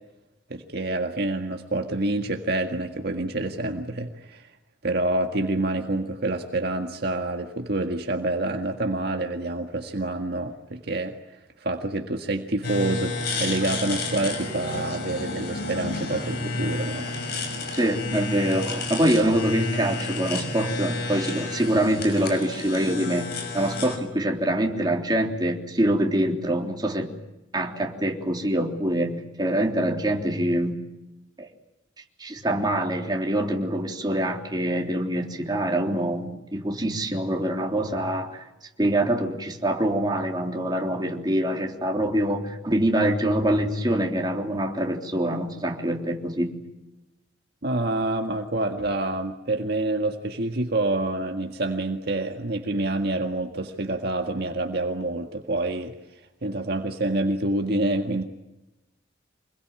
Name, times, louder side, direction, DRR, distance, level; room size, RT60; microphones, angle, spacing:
voice 1, 0.5-4.5 4.8-11.2 11.6-17.1 47.6-55.9 56.4-58.2, right 2 dB, 55° right, 4 dB, 1.8 m, -27 dB
sound 1, 12.6-24.0, left 3 dB, 55° left, 5.9 m, -31 dB
voice 2, 17.7-27.1 27.5-30.8 31.4-31.5 32.2-38.4 38.8-46.6, right 1 dB, 20° right, 1 dB, 3.5 m, -25 dB
26.5 x 22.0 x 9.0 m, 0.99 s
head